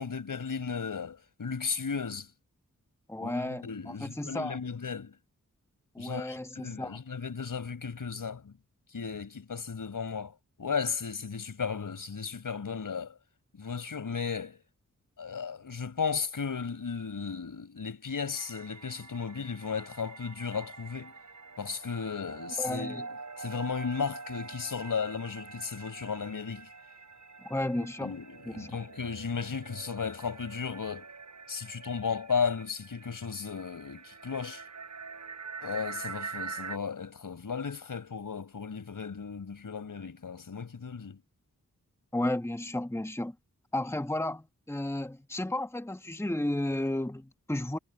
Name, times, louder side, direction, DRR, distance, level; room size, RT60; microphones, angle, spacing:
voice 1, 0.0-2.3 3.2-5.2 6.0-8.5 8.9-13.2 13.5-14.6 15.2-21.2 21.6-23.1 23.4-26.7 28.0-31.1 31.5-34.6 35.6-41.2, left 6 dB, 80° left, 5.5 m, -35 dB
voice 2, 3.1-4.6 5.9-7.0 22.6-23.0 27.4-28.2 28.4-28.7 42.1-43.3 43.7-47.8, left 1 dB, 10° left, 1.5 m, -33 dB
sound 1, 18.3-36.8, right 4 dB, 60° right, 4.6 m, -45 dB
cardioid pair, 50°, 32 cm